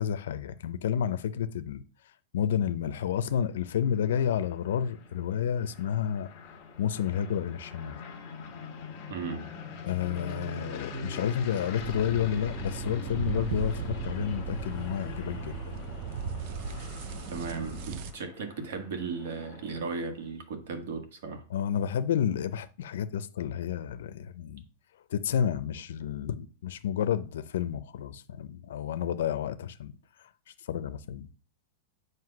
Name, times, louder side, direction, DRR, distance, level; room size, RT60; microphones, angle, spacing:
voice 1, 0.0-1.8 2.3-6.3 6.8-8.0 9.8-15.8 21.5-24.6 25.1-29.9 30.7-31.3, left 9 dB, 75° left, 0.5 m, -30 dB
sound 1, 3.0-20.2, left 3 dB, 30° left, 1.4 m, -44 dB
voice 2, 9.1-9.5 17.3-21.4, right 4 dB, 70° right, 1.5 m, -36 dB
sound 2, 11.8-18.1, right 5 dB, 40° right, 0.5 m, -36 dB
7.7 x 2.7 x 5.9 m
supercardioid pair, 170°, 0 cm